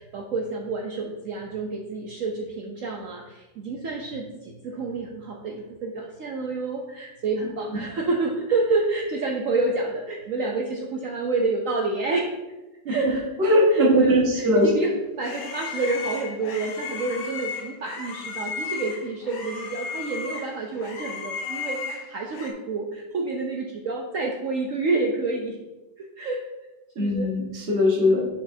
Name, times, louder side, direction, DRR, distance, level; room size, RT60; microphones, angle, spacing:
voice 1, 0.0-12.3 12.9-13.2 13.7-14.9 15.2-25.6 26.0-26.4 27.0-27.3 28.1-28.2, right 3 dB, 65° right, 0 dB, 0.8 m, -28 dB
voice 2, 13.4-14.7 27.0-28.2, equal, 40° right, -3 dB, 1.4 m, -20 dB
sound 1, 14.6-22.5, left 5 dB, 75° left, 1.4 m, -35 dB
6.9 x 5.5 x 2.7 m, 1.1 s
omnidirectional pair, 1.9 m